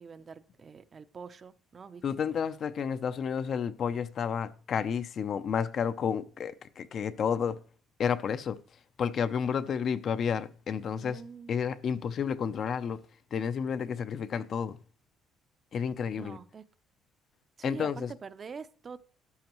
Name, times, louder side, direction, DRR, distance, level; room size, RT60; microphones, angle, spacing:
voice 1, 0.0-2.3 2.8-2.9 11.0-11.6 16.2-16.6 17.6-19.0, right 5 dB, 35° right, 0.6 m, -45 dB
voice 2, 2.0-7.6 8.0-11.2 11.5-14.8 15.7-16.4 17.6-18.1, left 7 dB, 50° left, 0.6 m, -31 dB
13.0 x 11.5 x 3.0 m
cardioid pair, 120°, 0 cm